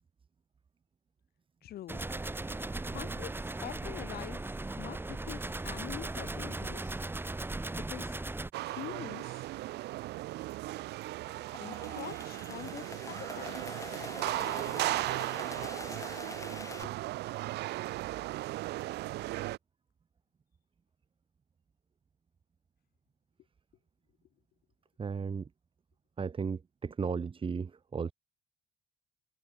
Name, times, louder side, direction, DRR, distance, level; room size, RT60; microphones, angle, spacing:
voice 1, 1.6-2.0 2.9-4.4 4.8-7.0 7.7-8.2 8.6-9.5 11.6-14.0 14.4-14.9 16.8-16.9, left 13 dB, 65° left, 5.9 m, -45 dB
sound 1, 1.9-8.5, right 2 dB, 10° right, 2.9 m, -37 dB
sound 2, 8.5-19.6, right 17 dB, 80° right, 5.9 m, -36 dB
sound 3, 11.3-16.8, left 3 dB, 20° left, 7.5 m, -45 dB
voice 2, 25.0-25.5 26.2-28.1, right 5 dB, 30° right, 3.4 m, -35 dB
cardioid pair, 110°, 17 cm